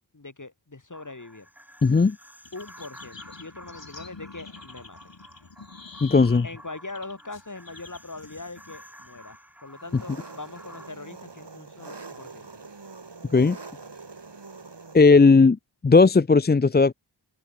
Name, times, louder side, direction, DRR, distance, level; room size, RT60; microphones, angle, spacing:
voice 1, 0.1-1.5 2.5-5.1 6.4-12.5, left 3 dB, 45° left, 3.6 m, -41 dB
sound 1, 0.9-10.9, equal, 5° right, 7.1 m, -50 dB
voice 2, 1.8-2.2 6.0-6.5 13.3-13.6 14.9-15.6 15.8-16.9, left 4 dB, 25° left, 0.5 m, -16 dB
sound 2, 2.4-9.4, left 4 dB, 85° left, 4.8 m, -47 dB
Engine, 9.8-15.0, right 4 dB, 70° right, 3.8 m, -44 dB
wide cardioid pair, 55°, 43 cm